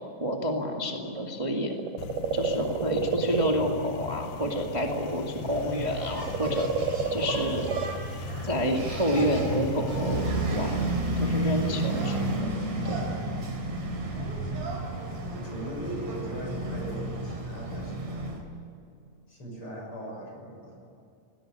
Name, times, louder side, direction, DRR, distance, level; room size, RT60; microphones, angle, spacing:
voice 1, 0.2-1.7 2.3-7.7 8.4-10.9 11.2-12.5 12.8-13.0, equal, 15° right, 1 dB, 1.6 m, -29 dB
sound 1, 1.6-5.2 5.5-8.1 9.1-9.2, right 6 dB, 90° right, 2.7 m, -30 dB
sound 2, 2.0-12.4, left 8 dB, 65° left, 1.6 m, -39 dB
Engine, 5.4-18.4, right 2 dB, 60° right, 4.6 m, -32 dB
voice 2, 15.3-18.4 19.3-20.8, equal, 40° left, 1 dB, 6.9 m, -39 dB
21.0 x 18.0 x 9.8 m, 2.5 s
omnidirectional pair, 3.7 m